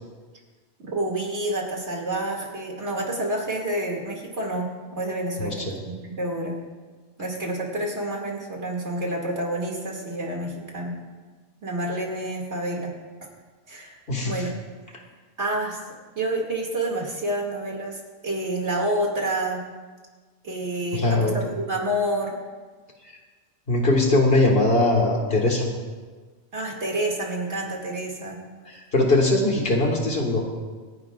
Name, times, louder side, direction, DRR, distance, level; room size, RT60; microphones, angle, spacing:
voice 1, 0.8-6.5 7.2-11.0 11.6-12.9 13.7-14.0 14.2-14.6 15.4-15.8 16.2-19.6 20.4-22.4 26.5-28.4, right 1 dB, 70° right, -1 dB, 2.7 m, -28 dB
voice 2, 5.4-5.8 14.1-14.4 20.9-21.4 23.0-23.1 23.7-25.7 28.7-30.6, left 2 dB, 55° left, 1 dB, 1.9 m, -21 dB
26.5 x 10.5 x 2.5 m, 1.4 s
omnidirectional pair, 1.2 m